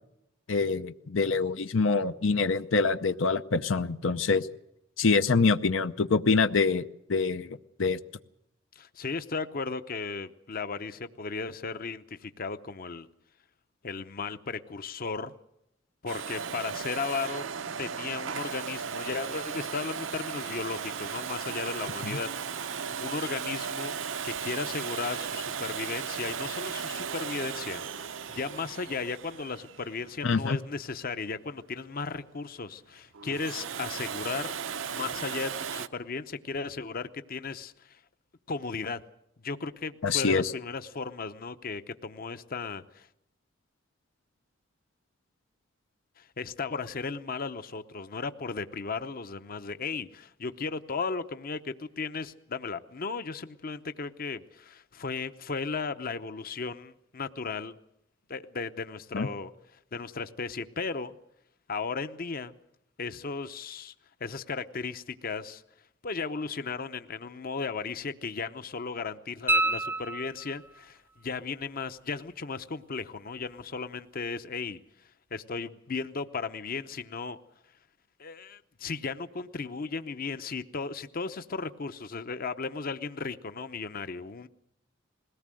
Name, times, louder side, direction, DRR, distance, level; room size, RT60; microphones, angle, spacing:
voice 1, 0.5-4.5 5.0-6.8 7.1-7.5 7.8-8.0 22.0-22.2 30.2-30.6 40.0-40.5 59.1-59.3, left 4 dB, 85° left, 10 dB, 0.7 m, -25 dB
voice 2, 8.8-13.1 13.8-15.3 16.0-17.4 17.8-22.6 23.0-34.6 34.9-38.0 38.5-39.0 39.4-43.1 46.2-57.8 58.3-59.5 59.9-61.1 61.7-62.5 63.0-63.9 64.2-65.6 66.0-74.8 75.3-77.4 78.2-84.5, left 4 dB, 50° left, 11 dB, 0.8 m, -35 dB
Domestic sounds home sounds, 16.1-30.8 33.1-35.9, right 7 dB, 75° right, 0.8 m, -36 dB
sound 1, 69.5-70.8 73.6-73.7, right 2 dB, 10° right, 0.7 m, -28 dB
21.0 x 18.0 x 7.7 m, 0.80 s
head